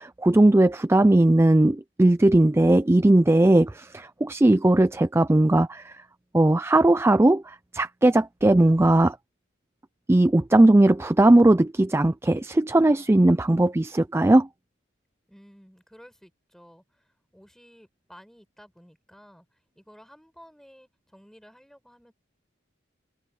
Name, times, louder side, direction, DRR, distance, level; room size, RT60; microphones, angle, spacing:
voice 1, 0.0-5.9 6.3-9.2 10.1-14.5, right 1 dB, 15° right, 0.4 m, -18 dB
voice 2, 15.3-22.1, equal, ahead, 7.8 m, -53 dB
open air
head